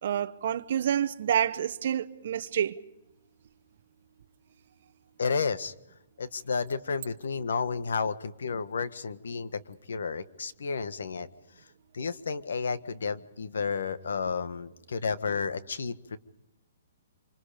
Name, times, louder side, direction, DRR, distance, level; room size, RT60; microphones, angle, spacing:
voice 1, 0.0-2.8, right 9 dB, 45° right, 1.0 m, -28 dB
voice 2, 5.2-5.7 6.2-11.3 11.9-16.2, left 5 dB, 85° left, 1.5 m, -32 dB
26.5 x 25.5 x 5.2 m
hypercardioid pair, 175°, 0 cm